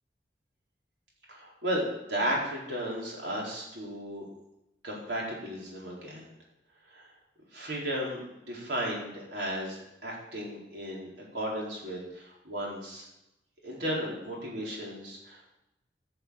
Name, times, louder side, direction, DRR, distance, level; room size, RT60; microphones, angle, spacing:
voice 1, 1.3-4.3 4.8-6.2 6.9-7.1 7.5-8.2 8.5-13.1 13.6-15.5, equal, 75° right, -4 dB, 4.3 m, -34 dB
11.5 x 6.8 x 7.1 m, 0.90 s
head